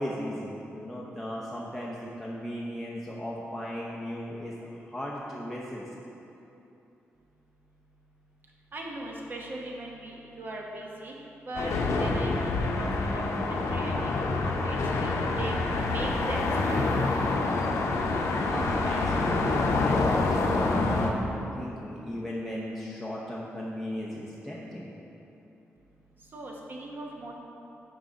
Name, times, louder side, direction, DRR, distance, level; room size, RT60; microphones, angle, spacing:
voice 1, 0.0-5.8 18.5-24.9, equal, ahead, -5 dB, 0.6 m, -36 dB
voice 2, 8.7-11.1 11.4-11.7 12.0-15.6 15.9-17.1 26.3-27.3, right 1 dB, 40° right, -1 dB, 1.0 m, -39 dB
sound 1, 11.5-21.1, left 3 dB, 85° left, 0.6 m, -27 dB
6.2 x 4.9 x 5.2 m, 2.9 s
wide cardioid pair, 125°, 5 cm